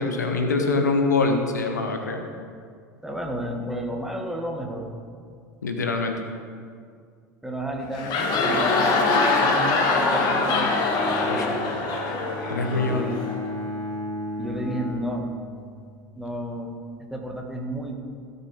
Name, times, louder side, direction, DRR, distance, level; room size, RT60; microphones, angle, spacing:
voice 1, 0.0-2.2 5.6-6.1 11.2-11.6 12.5-13.1, left 3 dB, 85° left, 4 dB, 1.1 m, -24 dB
voice 2, 3.0-4.9 7.4-10.7 12.8-13.2 14.4-15.3 16.2-16.8 17.1-17.9, right 1 dB, 5° right, 1 dB, 1.9 m, -32 dB
sound 1, 7.8-13.4, left 3 dB, 50° left, 1.9 m, -23 dB
Bowed string instrument, 10.0-15.8, left 2 dB, 15° left, 2.3 m, -34 dB
17.0 x 6.9 x 5.0 m, 2.1 s
figure-of-eight pair, 70°, 9 cm